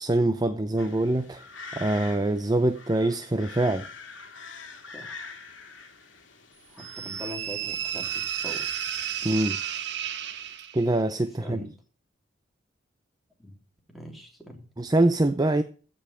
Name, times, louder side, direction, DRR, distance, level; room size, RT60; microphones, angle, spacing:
voice 1, 0.0-1.4 1.8-3.8 9.2-9.6 10.7-11.6 14.8-15.6, right 1 dB, 20° right, 0.6 m, -24 dB
sound 1, 0.8-10.6, left 4 dB, 80° left, 2.2 m, -45 dB
voice 2, 4.9-5.3 6.7-8.7 11.4-11.7 13.4-13.6 13.9-14.7, equal, ahead, 3.2 m, -42 dB
sound 2, 6.8-11.0, right 10 dB, 65° right, 1.1 m, -32 dB
15.5 x 5.4 x 5.7 m
head